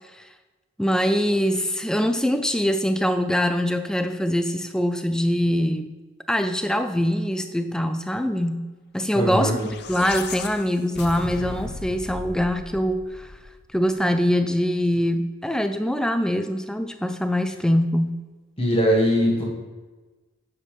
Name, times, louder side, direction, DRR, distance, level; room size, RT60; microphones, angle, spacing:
voice 1, 0.8-5.9 6.3-9.6 9.9-13.3 13.7-18.2, equal, 5° left, 8 dB, 0.4 m, -23 dB
voice 2, 9.1-9.5 18.6-19.4, equal, 25° left, -3 dB, 1.9 m, -20 dB
sound 1, 9.4-13.8, left 4 dB, 50° left, 0.6 m, -37 dB
9.5 x 7.4 x 3.4 m, 1.3 s
head